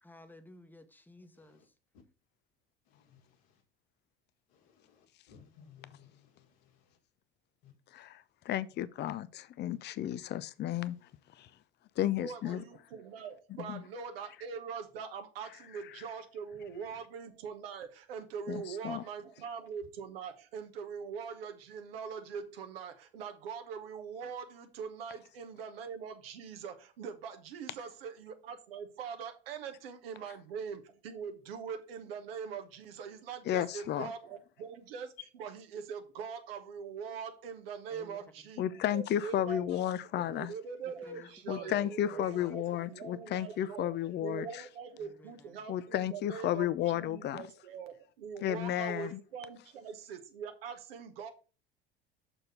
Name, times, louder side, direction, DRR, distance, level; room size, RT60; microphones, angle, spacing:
voice 1, 0.0-1.7 37.9-38.2 40.8-41.3 41.6-42.8 45.0-45.6, left 2 dB, 5° left, 1.1 m, -54 dB
voice 2, 2.9-3.4 4.5-6.8 7.6-7.7, left 7 dB, 60° left, 1.7 m, -60 dB
voice 3, 7.9-11.0 11.4-11.5 12.0-12.6 13.7-13.8 18.5-19.0 33.5-34.1 38.6-40.5 41.5-44.6 45.7-47.5 48.4-49.2, left 12 dB, 35° left, 0.5 m, -33 dB
voice 4, 12.2-39.9 40.2-51.3, right 6 dB, 70° right, 1.1 m, -43 dB
6.5 x 4.5 x 5.1 m
figure-of-eight pair, 65°, 30 cm